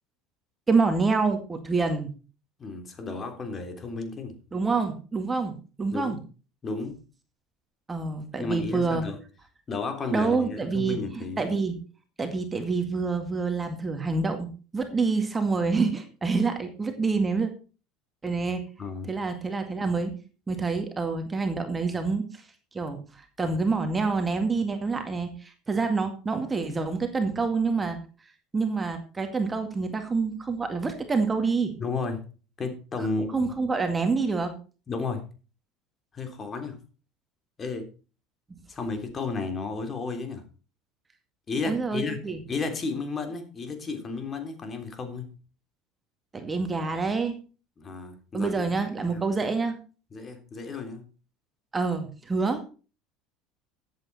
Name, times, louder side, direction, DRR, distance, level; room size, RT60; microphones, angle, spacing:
voice 1, 0.7-2.1 4.5-6.2 7.9-9.1 10.1-11.8 12.2-14.5 14.7-17.5 18.2-18.6 19.1-20.1 20.5-22.4 22.7-23.0 23.4-28.0 28.5-31.7 33.3-34.5 41.7-42.4 46.3-47.3 48.3-49.8 51.7-52.6, right 4 dB, 20° right, 6 dB, 2.1 m, -27 dB
voice 2, 2.6-4.4 5.9-6.2 6.6-7.0 8.4-9.2 9.7-11.4 18.8-19.1 25.7-25.8 31.8-32.2 32.6-33.5 34.9-35.2 36.1-36.8 37.6-37.9 38.7-40.4 41.5-42.2 42.5-45.3 47.8-48.6 49.1-49.3 50.1-51.0, left 4 dB, 30° left, 6 dB, 3.5 m, -33 dB
13.5 x 8.5 x 4.3 m, 0.35 s
hypercardioid pair, 80°, 0 cm